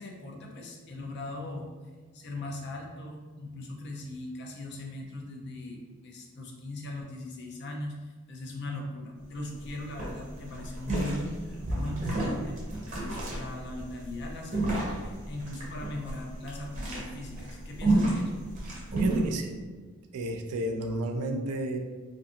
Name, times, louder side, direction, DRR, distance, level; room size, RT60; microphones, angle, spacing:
voice 1, 0.0-1.7 2.1-12.6 13.0-18.3, left 1 dB, 50° left, 1 dB, 0.4 m, -39 dB
sound 1, 9.2-9.3 9.6-9.7 10.0-19.2, right 2 dB, 35° right, 0.6 m, -30 dB
voice 2, 19.0-19.6 20.1-21.8, right 1 dB, 90° right, 5 dB, 0.3 m, -32 dB
2.4 x 2.4 x 2.7 m, 1.4 s
head